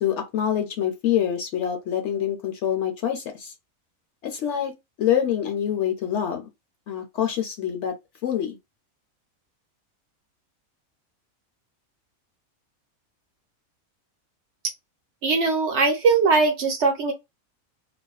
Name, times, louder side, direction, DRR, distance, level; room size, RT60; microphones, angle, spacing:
voice 1, 0.0-3.5 4.2-4.7 5.0-6.5 6.9-7.9 8.2-8.6, left 10 dB, 65° left, 0.8 m, -25 dB
voice 2, 15.2-17.1, right 4 dB, 65° right, 0.8 m, -20 dB
2.5 x 2.2 x 2.3 m
omnidirectional pair, 1.5 m